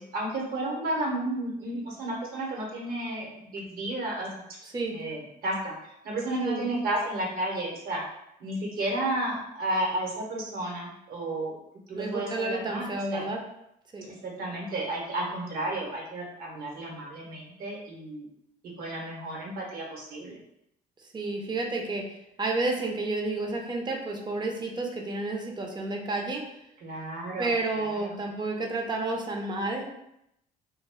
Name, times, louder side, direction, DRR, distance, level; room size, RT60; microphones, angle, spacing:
voice 1, 0.0-4.3 4.9-5.8 6.0-8.0 8.4-11.6 11.9-13.2 14.1-18.3 18.8-20.4 26.8-28.1, right 1 dB, 65° right, -2 dB, 1.0 m, -32 dB
voice 2, 4.6-5.0 6.4-6.7 12.0-13.4 13.9-14.2 21.1-22.1 22.4-26.4 27.4-29.9, right 2 dB, 25° right, 1 dB, 0.5 m, -30 dB
2.4 x 2.1 x 3.5 m, 0.80 s
cardioid pair, 110°, 17 cm